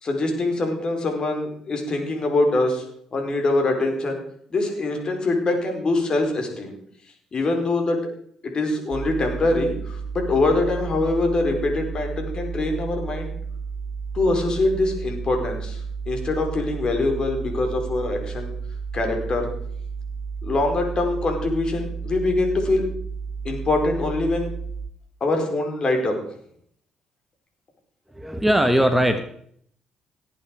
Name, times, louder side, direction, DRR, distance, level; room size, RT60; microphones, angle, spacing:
voice 1, 0.0-2.8 3.1-4.2 4.5-6.7 7.3-8.1 8.4-13.3 14.1-15.8 16.1-18.5 18.9-19.5 20.4-22.9 23.4-24.5 25.2-26.2, left 2 dB, 45° left, 3 dB, 5.0 m, -23 dB
sound 1, 8.9-24.9, right 5 dB, 50° right, 1.0 m, -32 dB
voice 2, 28.1-29.2, equal, 5° right, 7 dB, 1.5 m, -19 dB
18.0 x 8.6 x 5.0 m, 0.64 s
hypercardioid pair, 55°, 2 cm